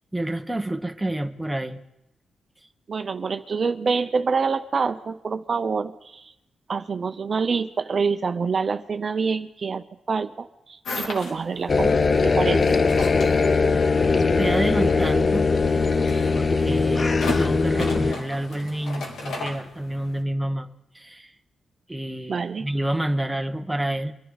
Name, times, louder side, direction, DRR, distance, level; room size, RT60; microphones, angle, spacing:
voice 1, 0.1-1.8 14.3-15.5 16.3-20.7 20.9-21.3 21.9-24.1, right 1 dB, 5° right, 5 dB, 1.1 m, -28 dB
voice 2, 2.9-6.3 6.7-11.9 12.2-12.8 22.3-22.7, right 5 dB, 50° right, 9 dB, 0.7 m, -26 dB
sound 1, 10.8-20.2, left 3 dB, 85° left, 2.8 m, -36 dB
sound 2, 11.7-18.1, left 4 dB, 40° left, 0.6 m, -20 dB
24.5 x 11.0 x 4.1 m, 0.89 s
cardioid pair, 80°, 0 cm